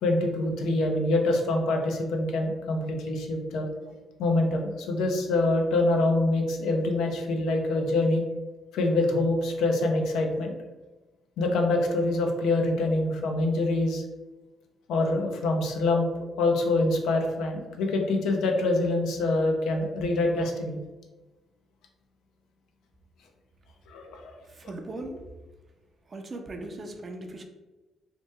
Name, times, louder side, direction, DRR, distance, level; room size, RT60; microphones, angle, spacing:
voice 1, 0.0-3.7 4.2-8.2 8.7-10.5 11.4-14.0 14.9-16.0 16.4-20.8 23.9-24.2, left 2 dB, 85° left, 2 dB, 0.5 m, -25 dB
voice 2, 24.4-25.3 26.1-27.4, right 2 dB, 35° right, 5 dB, 0.4 m, -38 dB
2.9 x 2.1 x 3.3 m, 1.2 s
cardioid pair, 90°, 0 cm